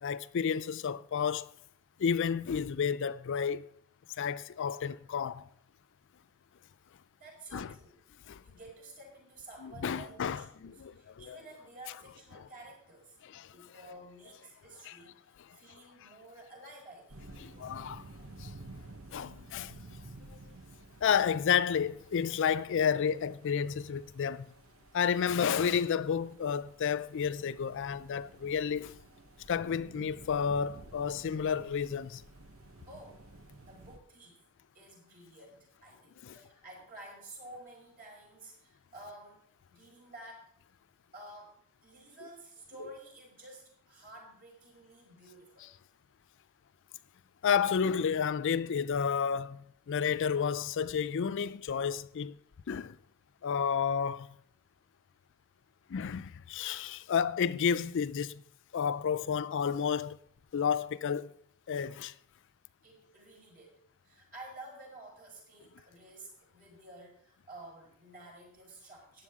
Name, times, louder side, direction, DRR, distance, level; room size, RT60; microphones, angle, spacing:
voice 1, 0.0-1.5 2.0-3.7 4.2-5.5 7.5-7.7 8.3-8.4 9.6-11.4 13.2-13.5 14.9-15.0 17.4-18.1 18.4-18.6 19.1-19.8 20.3-20.4 21.0-24.5 24.9-29.0 29.5-32.2 36.2-36.4 47.4-52.4 52.7-53.0 53.4-54.3 55.9-58.4 58.7-60.2 60.5-61.3 61.7-62.1, left 7 dB, 60° left, 0.4 m, -31 dB
voice 2, 7.2-8.0 8.4-13.2 13.5-17.3 32.9-33.2 33.6-34.4 34.7-39.4 39.7-40.5 41.1-45.7 62.8-69.2, right 2 dB, 40° right, 5.2 m, -51 dB
sound 1, 17.1-34.0, right 2 dB, 65° right, 1.1 m, -53 dB
14.5 x 9.8 x 3.7 m
head